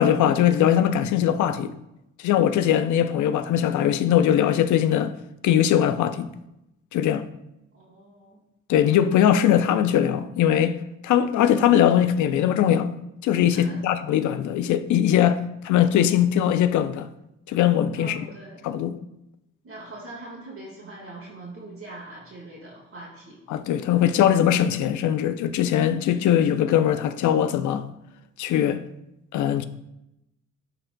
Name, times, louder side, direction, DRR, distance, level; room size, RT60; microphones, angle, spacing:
voice 1, 0.0-1.7 2.2-5.1 5.4-6.3 6.9-7.3 8.7-10.8 11.0-12.9 13.2-17.1 17.5-18.2 18.6-19.0 23.5-27.9 28.4-28.8 29.3-29.6, left 10 dB, 75° left, 0.5 m, -21 dB
voice 2, 7.7-8.4 13.5-14.0 18.0-18.7 19.6-23.4, right 2 dB, 45° right, 1.7 m, -42 dB
12.0 x 3.9 x 2.2 m
cardioid pair, 90°, 30 cm